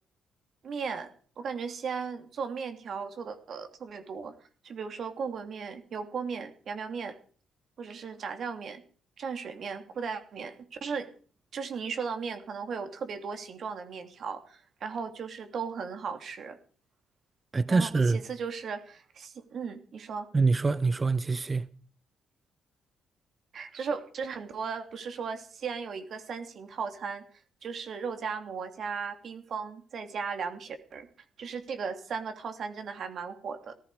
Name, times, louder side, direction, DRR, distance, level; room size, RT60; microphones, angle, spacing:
voice 1, 0.6-1.1 1.4-4.4 4.6-7.2 7.8-8.8 9.2-11.1 11.5-16.6 17.7-20.3 23.5-27.2 27.6-31.1 31.4-33.7, right 5 dB, 60° right, 3.0 m, -36 dB
voice 2, 17.5-18.2 20.3-21.7, right 4 dB, 25° right, 0.8 m, -25 dB
18.0 x 15.5 x 5.0 m
cardioid pair, 90°, 0 cm